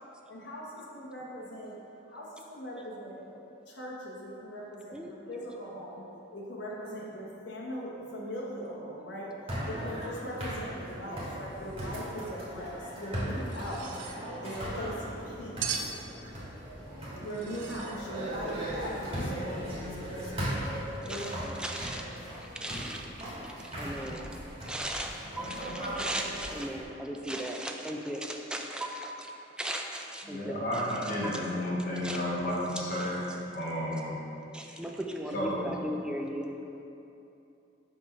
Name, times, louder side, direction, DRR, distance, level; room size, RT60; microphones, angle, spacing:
voice 1, 0.3-1.8 2.1-3.2 3.7-6.1 6.3-9.3 9.6-14.0 14.4-15.7 17.2-20.6 21.0-21.3 23.8-24.2 24.8-24.9, equal, 70° left, -4 dB, 0.9 m, -40 dB
sound 1, 9.5-26.8, equal, 30° right, 1.4 m, -38 dB
sound 2, 13.5-14.2 15.6-16.0 17.3-18.0, right 7 dB, 80° right, 0.5 m, -37 dB
voice 2, 21.1-23.1 23.4-24.3 24.6-31.5 32.0-32.2 32.9-33.4 33.9-34.0 34.5-36.6, right 1 dB, 5° right, 1 dB, 0.3 m, -38 dB
voice 3, 30.3-33.2 33.5-34.2 35.3-35.7, left 1 dB, 50° left, -8 dB, 1.1 m, -32 dB
6.2 x 3.0 x 5.0 m, 2.9 s
head